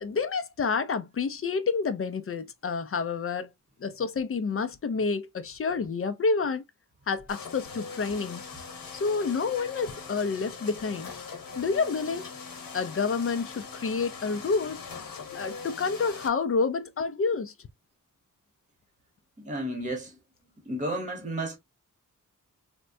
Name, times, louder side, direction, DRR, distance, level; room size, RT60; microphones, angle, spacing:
voice 1, 0.0-3.5 3.8-6.6 7.1-8.5 8.9-11.1 11.6-12.3 12.7-14.8 15.3-17.5, left 4 dB, 40° left, 0.5 m, -29 dB
sound 1, 7.3-16.3, left 5 dB, 85° left, 1.1 m, -41 dB
voice 2, 19.4-20.2 20.7-21.6, right 1 dB, 20° right, 0.9 m, -32 dB
3.5 x 2.2 x 2.6 m
wide cardioid pair, 110°, 33 cm